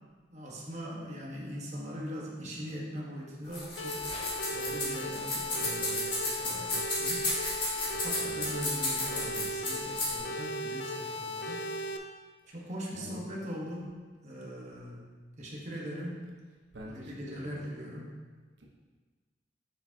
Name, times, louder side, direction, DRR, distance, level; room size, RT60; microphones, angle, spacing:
voice 1, 0.3-4.0 4.5-7.3 7.9-11.6 12.5-13.9 14.2-15.1 15.4-16.2 16.9-18.1, equal, 40° right, -3 dB, 1.2 m, -41 dB
sound 1, 3.4-10.2, left 2 dB, 30° left, 2.0 m, -33 dB
sound 2, 3.8-12.0, left 1 dB, 80° left, 0.5 m, -37 dB
voice 2, 7.8-8.4 12.6-13.2 16.7-17.6 18.6-18.7, equal, 85° right, -2 dB, 1.1 m, -48 dB
6.9 x 6.6 x 2.8 m, 1.4 s
head